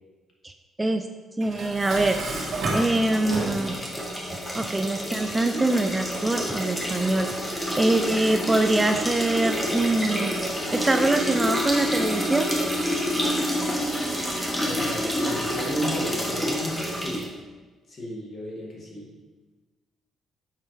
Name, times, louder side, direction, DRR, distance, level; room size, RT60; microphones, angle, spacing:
voice 1, 1.4-2.2 2.7-3.7 4.5-7.3 7.8-10.3 10.7-12.5, right 2 dB, 15° right, 6 dB, 0.4 m, -24 dB
Dishes pots and pans, 1.4-3.9, right 2 dB, 60° right, 1.7 m, -31 dB
sound 1, 2.1-17.3, equal, 10° left, 1.4 m, -28 dB
voice 2, 14.6-17.3 17.9-19.1, left 1 dB, 45° left, -3 dB, 2.1 m, -35 dB
7.4 x 5.5 x 3.3 m, 1.3 s
cardioid pair, 90°, 0 cm